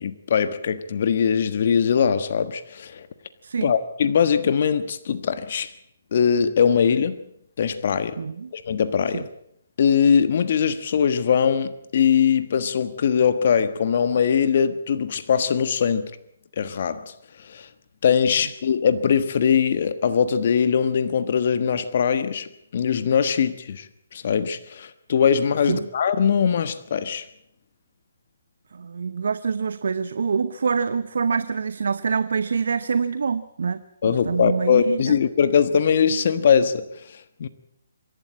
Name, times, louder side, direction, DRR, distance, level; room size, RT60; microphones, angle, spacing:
voice 1, 0.0-3.1 3.6-5.7 6.1-7.2 7.6-8.2 8.5-9.3 9.8-16.1 16.6-17.7 18.0-27.3 34.0-37.5, left 7 dB, 55° left, 1.4 m, -21 dB
voice 2, 8.2-8.5 9.1-9.2 25.7-25.9 28.7-35.0, right 5 dB, 70° right, 0.9 m, -25 dB
26.0 x 12.0 x 8.6 m
hypercardioid pair, 145°, 0 cm